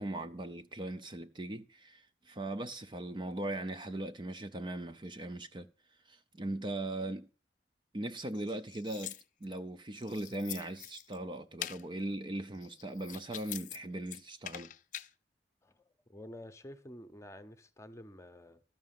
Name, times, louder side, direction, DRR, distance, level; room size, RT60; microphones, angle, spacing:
voice 1, 0.0-5.7 6.1-7.3 7.9-14.7, right 1 dB, 25° right, 0.6 m, -39 dB
sound 1, 8.3-9.6 10.0-11.2 11.6-11.8 12.5-13.8 14.1-15.1, left 12 dB, 45° left, 0.5 m, -44 dB
voice 2, 15.6-18.6, left 1 dB, 15° left, 0.8 m, -50 dB
12.5 x 6.2 x 7.5 m
head